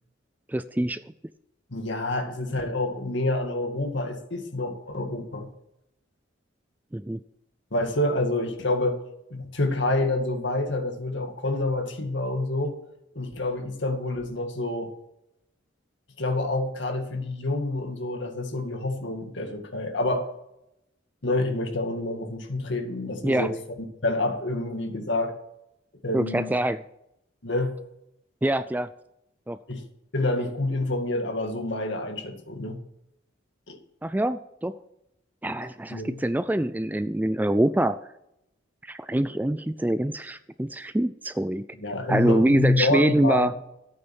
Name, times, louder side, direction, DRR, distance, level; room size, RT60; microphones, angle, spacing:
voice 1, 0.5-1.0 6.9-7.2 23.2-23.5 26.1-26.8 28.4-28.9 29.5-29.6 34.0-34.7 35.4-38.0 38.8-41.7 42.1-43.5, right 1 dB, 10° right, 13 dB, 0.3 m, -24 dB
voice 2, 1.7-5.5 7.7-9.0 9.3-12.8 13.2-14.9 16.2-20.3 21.2-25.4 26.0-26.5 27.4-27.8 29.7-29.8 30.1-32.8 33.7-33.8 35.9-36.2 41.8-43.5, left 2 dB, 65° left, 4 dB, 2.1 m, -27 dB
13.0 x 8.9 x 6.1 m, 0.84 s
head